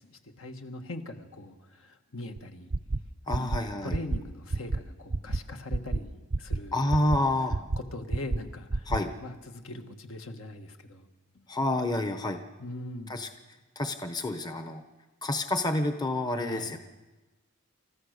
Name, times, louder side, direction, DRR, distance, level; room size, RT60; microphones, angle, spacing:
voice 1, 0.0-2.7 3.3-3.5 3.8-7.2 7.9-8.9 9.2-11.1 11.3-11.4 12.6-13.1 16.4-16.8, left 1 dB, 65° left, 5 dB, 1.5 m, -41 dB
sound 1, 2.4-2.5 2.7-3.0 3.3-3.6 3.9-4.2 4.5-4.8 5.1-5.4 5.7-6.0 6.3-6.6 6.9-7.2 7.5-7.8 8.1-8.4 8.7-9.0, right 3 dB, 40° right, 0.6 m, -28 dB
voice 2, 3.3-4.0 6.7-7.7 8.9-9.1 11.5-12.4 13.1-13.3 13.8-14.8 15.2-16.8, left 1 dB, 20° left, 7 dB, 0.9 m, -28 dB
29.5 x 14.5 x 6.6 m, 1.2 s
head